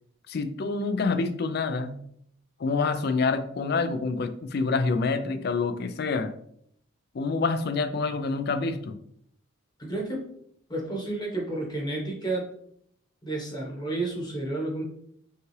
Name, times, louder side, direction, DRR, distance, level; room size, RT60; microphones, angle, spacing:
voice 1, 0.3-2.0 2.6-6.3 7.1-9.0, left 4 dB, 50° left, 9 dB, 0.4 m, -27 dB
voice 2, 9.8-10.3 10.7-12.5 13.2-14.8, right 2 dB, 20° left, -1 dB, 1.0 m, -31 dB
5.4 x 2.4 x 3.2 m, 0.68 s
head